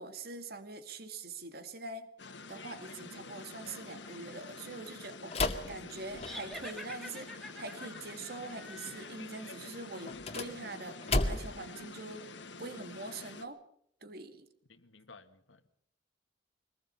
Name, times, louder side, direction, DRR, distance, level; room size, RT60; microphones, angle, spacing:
voice 1, 0.0-12.3 12.6-13.6 14.0-14.5, right 3 dB, 55° right, 8 dB, 2.2 m, -44 dB
sound 1, 2.2-13.4, left 3 dB, 70° left, 1.8 m, -48 dB
sound 2, 5.3-6.7 10.0-11.7, left 2 dB, 35° left, 1.9 m, -33 dB
sound 3, 6.2-9.6, left 1 dB, ahead, 2.9 m, -47 dB
voice 2, 14.7-15.7, left 4 dB, 90° left, 9 dB, 1.9 m, -56 dB
24.0 x 20.5 x 5.5 m, 0.70 s
head